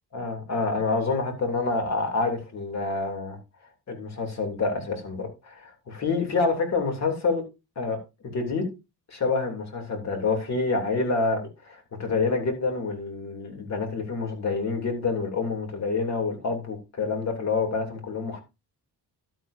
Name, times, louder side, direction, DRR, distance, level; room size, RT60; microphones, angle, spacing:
voice 1, 0.1-3.4 3.9-7.4 7.8-8.0 8.2-8.7 9.1-18.4, left 4 dB, 40° left, 3.0 m, -27 dB
11.5 x 9.8 x 2.7 m
cardioid pair, 160°, 41 cm